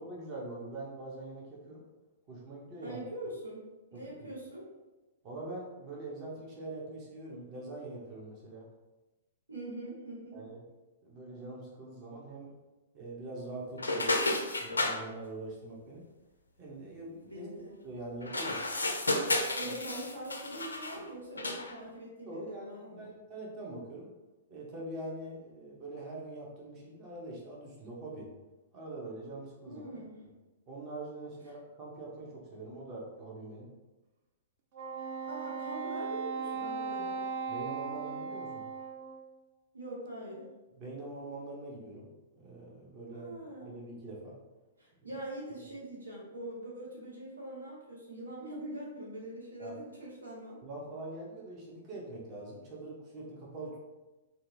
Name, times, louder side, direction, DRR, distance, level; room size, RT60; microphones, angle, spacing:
voice 1, 0.0-1.8 2.3-3.0 3.9-4.3 5.2-8.7 10.3-10.7 11.0-12.5 12.9-14.3 14.6-16.1 16.6-17.5 17.8-18.6 19.6-19.7 22.3-24.1 24.5-28.3 28.7-30.3 30.7-33.7 37.5-38.6 40.7-42.1 42.3-44.4 49.6-49.8 50.6-53.8, right 2 dB, 35° right, -3 dB, 0.8 m, -43 dB
voice 2, 2.8-3.6 3.9-4.6 9.5-10.4 17.2-17.7 19.5-23.1 29.6-30.2 35.2-37.2 39.7-40.5 43.1-43.7 44.8-50.6, right 1 dB, 85° right, -4 dB, 0.8 m, -43 dB
sound 1, 13.8-15.0 18.2-21.0 21.4-21.7, left 2 dB, 85° left, 0.4 m, -32 dB
Wind instrument woodwind instrument, 34.7-39.3, right 5 dB, 50° right, 0.4 m, -38 dB
2.8 x 2.3 x 2.6 m, 1.1 s
figure-of-eight pair, 115°, 0 cm